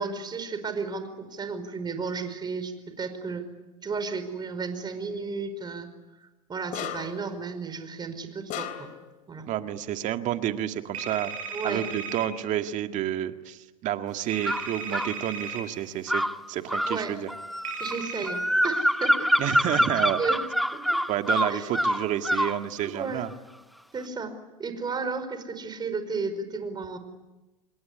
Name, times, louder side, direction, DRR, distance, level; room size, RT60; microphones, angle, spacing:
voice 1, 0.0-3.4 3.8-5.9 6.5-8.9 9.3-9.5 11.5-11.8 16.8-17.1 17.8-19.3 19.6-19.8 20.2-20.4 20.7-21.0 21.5-21.7 22.8-23.3 23.9-27.0, right 4 dB, 25° right, 9 dB, 5.1 m, -33 dB
sound 1, 6.7-7.3 8.5-9.1, left 9 dB, 50° left, 3.8 m, -35 dB
voice 2, 9.5-11.4 11.6-16.2 16.5-17.3 19.4-20.2 21.1-23.3, right 12 dB, 45° right, 7 dB, 2.0 m, -30 dB
sound 2, 10.9-12.3 14.3-15.6 17.6-18.3, right 5 dB, 75° right, 4.1 m, -35 dB
sound 3, 14.4-15.1 16.1-22.6, equal, ahead, 1.1 m, -25 dB
27.5 x 22.0 x 9.8 m, 1.1 s
hypercardioid pair, 85°, 17 cm